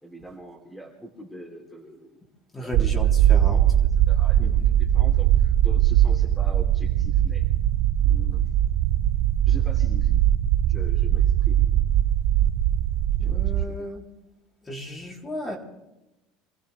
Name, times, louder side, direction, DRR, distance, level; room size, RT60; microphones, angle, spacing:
voice 1, 0.0-2.2 2.6-2.9 3.2-3.7 4.1-7.4 8.0-8.4 9.5-10.1 10.7-11.7 13.2-13.9, right 1 dB, ahead, -1 dB, 3.2 m, -43 dB
voice 2, 2.5-3.6 4.4-4.7 13.2-14.1 14.6-15.6, left 1 dB, 15° left, 0 dB, 3.6 m, -35 dB
sound 1, 2.7-13.7, right 11 dB, 60° right, 0.8 m, -20 dB
27.0 x 15.0 x 3.4 m, 0.96 s
supercardioid pair, 120°, 0 cm